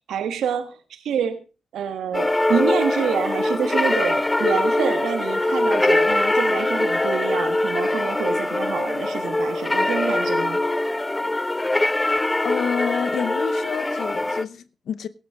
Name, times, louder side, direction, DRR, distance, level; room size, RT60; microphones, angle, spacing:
voice 1, 0.1-1.4 1.7-10.6, right 8 dB, 85° right, 1.3 m, -27 dB
sound 1, 2.1-14.4, left 2 dB, 25° left, 0.8 m, -22 dB
voice 2, 12.0-15.1, left 7 dB, 80° left, 0.8 m, -29 dB
17.0 x 12.5 x 3.7 m
supercardioid pair, 50°, 0 cm